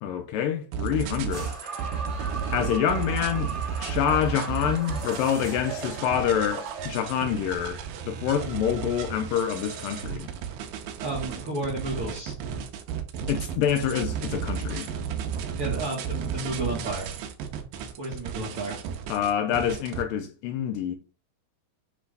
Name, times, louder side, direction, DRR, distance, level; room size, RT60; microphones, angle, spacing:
voice 1, 0.0-1.5 2.5-3.5 3.8-10.3 13.3-14.9 19.1-21.0, left 9 dB, 80° left, 2.1 m, -27 dB
sound 1, 0.7-20.0, right 7 dB, 75° right, 2.4 m, -33 dB
sound 2, 1.3-6.9, right 4 dB, 25° right, 1.6 m, -37 dB
voice 2, 11.0-12.4 15.6-17.1 18.0-18.8, right 2 dB, 50° right, 1.9 m, -32 dB
9.9 x 3.4 x 3.3 m
omnidirectional pair, 4.5 m